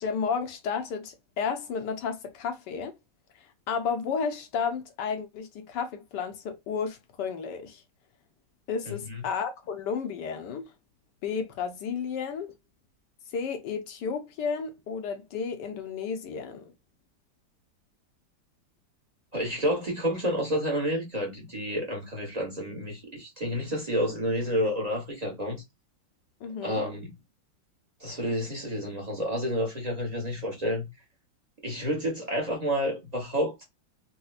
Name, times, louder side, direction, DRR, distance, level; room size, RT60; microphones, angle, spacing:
voice 1, 0.0-2.9 3.7-7.8 8.7-10.7 11.2-12.5 13.3-16.6 26.4-26.8, left 6 dB, 70° left, 1.1 m, -32 dB
voice 2, 8.9-9.2 19.3-25.6 26.6-27.1 28.0-30.9 31.6-33.6, equal, 30° right, 0.7 m, -30 dB
4.1 x 2.1 x 2.3 m
omnidirectional pair, 2.1 m